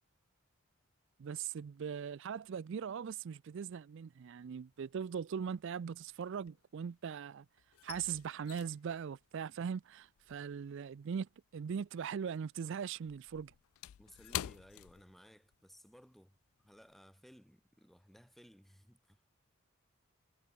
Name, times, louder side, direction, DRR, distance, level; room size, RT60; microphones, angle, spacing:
voice 1, 1.2-7.5 7.8-13.5, right 7 dB, 60° right, 0.4 m, -40 dB
sound 1, 4.3-4.9 5.1-7.1 7.4-12.1 12.4-15.7 16.0-16.2 16.6-16.9, left 13 dB, 80° left, 0.3 m, -48 dB
voice 2, 14.0-19.2, equal, ahead, 2.9 m, -60 dB
head